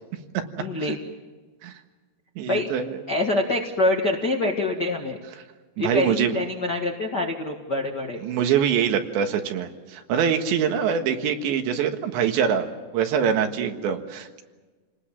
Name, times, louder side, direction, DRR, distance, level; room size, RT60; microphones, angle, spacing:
voice 1, 0.6-1.0 2.5-2.7 3.1-5.2 5.8-8.2, left 2 dB, 60° left, 1 dB, 1.1 m, -25 dB
voice 2, 2.4-3.0 5.8-6.4 8.2-12.7 12.9-14.4, right 8 dB, 90° right, 6 dB, 3.9 m, -24 dB
28.5 x 19.5 x 7.5 m, 1.3 s
omnidirectional pair, 5.0 m